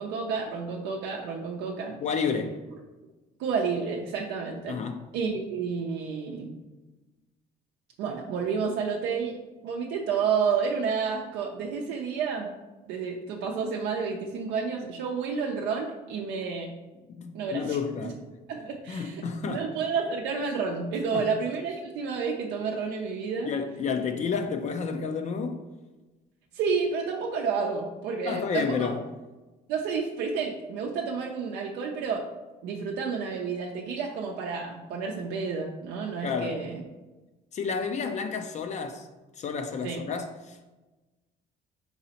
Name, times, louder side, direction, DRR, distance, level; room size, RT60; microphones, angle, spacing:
voice 1, 0.0-2.0 3.4-4.8 5.1-6.5 8.0-9.3 9.6-12.5 12.9-16.7 17.3-17.8 18.5-23.5 26.5-28.7 29.7-32.2 32.6-36.8 39.8-40.0, right 5 dB, 85° right, 0.5 m, -30 dB
voice 2, 2.0-2.6 4.7-5.0 17.1-18.2 18.9-19.7 21.1-21.3 23.4-25.6 28.2-29.0 36.2-36.6 37.5-39.1 39.4-40.7, left 5 dB, 45° left, 0.4 m, -30 dB
4.0 x 4.0 x 2.8 m
cardioid pair, 110°, 17 cm